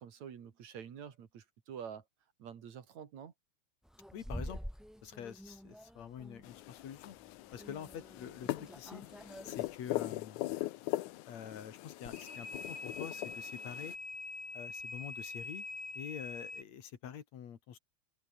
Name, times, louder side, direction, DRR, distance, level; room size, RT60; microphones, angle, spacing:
voice 1, 0.0-2.0 2.4-3.3, right 8 dB, 65° right, 3.5 m, -47 dB
sound 1, 3.9-9.8, equal, ahead, 5.9 m, -47 dB
voice 2, 4.1-4.6 5.0-7.2 7.5-9.0 9.4-10.4 11.3-13.9 14.5-15.6 15.9-17.8, left 8 dB, 65° left, 3.0 m, -46 dB
sound 2, 6.4-13.9, left 17 dB, 85° left, 2.2 m, -41 dB
sound 3, 12.1-16.6, left 3 dB, 45° left, 6.3 m, -44 dB
omnidirectional pair, 3.4 m